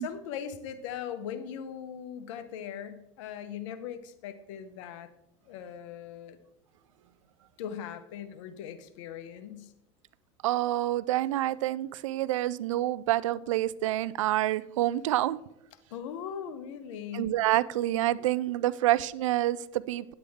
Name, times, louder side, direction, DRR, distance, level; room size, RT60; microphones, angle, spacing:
voice 1, 0.0-5.1 5.5-6.4 7.6-9.7 15.9-17.3, left 8 dB, 75° left, 11 dB, 0.9 m, -39 dB
voice 2, 10.4-15.4 17.1-20.1, right 15 dB, 85° right, 19 dB, 0.4 m, -27 dB
9.7 x 8.4 x 3.6 m, 0.85 s
supercardioid pair, 100°, 16 cm